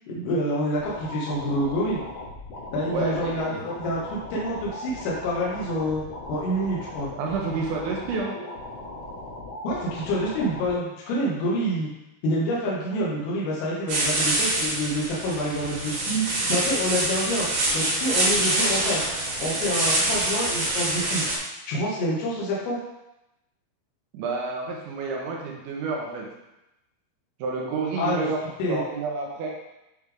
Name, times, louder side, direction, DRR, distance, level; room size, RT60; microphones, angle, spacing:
voice 1, 0.1-2.0 2.7-6.0 6.3-7.1 9.6-11.9 12.2-17.5 17.7-19.1 19.4-21.2 21.7-22.8 28.0-28.3 28.6-28.8, equal, 90° left, -5 dB, 4.0 m, -27 dB
sound 1, 0.8-10.8, left 2 dB, 65° left, 2.3 m, -38 dB
voice 2, 2.9-3.7 7.2-8.3 24.1-26.3 27.4-29.5, right 4 dB, 75° right, -1 dB, 3.0 m, -29 dB
sound 2, 13.9-21.4, right 2 dB, 55° right, 2.3 m, -25 dB
9.5 x 3.5 x 3.5 m, 0.92 s
omnidirectional pair, 5.7 m